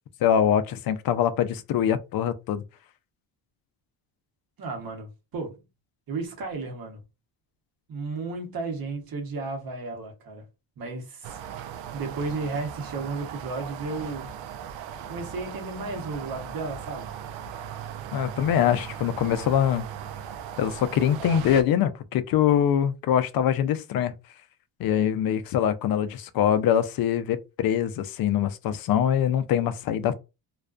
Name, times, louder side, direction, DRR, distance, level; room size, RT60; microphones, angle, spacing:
voice 1, 0.2-2.6 18.1-19.9 20.6-24.1 24.8-30.1, left 9 dB, 50° left, 0.5 m, -23 dB
voice 2, 4.6-5.6 6.1-7.0 7.9-10.5 10.8-11.4 11.9-14.3 15.1-17.2, right 3 dB, 45° right, 1.0 m, -33 dB
sound 1, 11.2-21.6, right 8 dB, 70° right, 0.5 m, -38 dB
2.4 x 2.1 x 2.4 m
cardioid pair, 100°, 48 cm